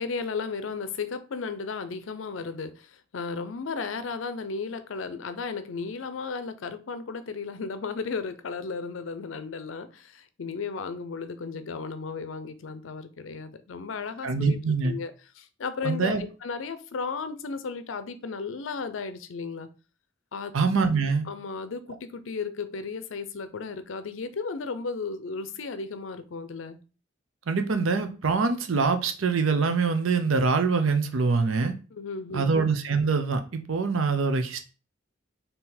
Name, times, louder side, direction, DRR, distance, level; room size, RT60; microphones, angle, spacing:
voice 1, 0.0-14.6 14.8-19.7 20.3-20.5 21.2-26.8 31.9-32.5, left 4 dB, 80° left, 0.5 m, -34 dB
voice 2, 14.2-15.0 15.8-16.2 20.5-21.3 27.5-31.7 32.3-34.6, right 4 dB, 85° right, 0.6 m, -24 dB
4.3 x 2.8 x 3.8 m
head